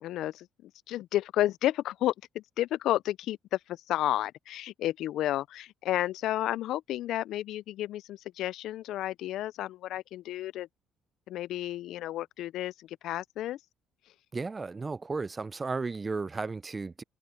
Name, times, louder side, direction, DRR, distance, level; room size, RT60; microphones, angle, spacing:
voice 1, 0.0-10.7 11.3-13.6, left 13 dB, 70° left, 0.3 m, -32 dB
voice 2, 14.3-17.0, right 4 dB, 25° right, 0.5 m, -34 dB
cardioid pair, 100°, 0 cm